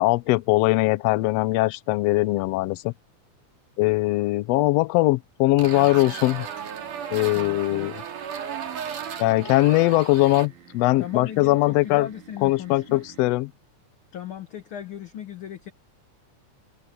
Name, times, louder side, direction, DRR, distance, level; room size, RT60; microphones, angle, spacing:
voice 1, 0.0-2.9 3.8-6.5 7.1-8.0 9.2-12.1 12.4-13.5, left 19 dB, 85° left, 1.4 m, -21 dB
Zipper + fart feel. Gravador na corda da guitarra, 5.6-10.5, right 8 dB, 80° right, 4.2 m, -35 dB
sound 1, 6.0-13.3, right 9 dB, 65° right, 3.9 m, -50 dB
voice 2, 7.3-7.9 11.0-13.3 14.1-15.7, left 10 dB, 55° left, 1.6 m, -37 dB
omnidirectional pair, 3.6 m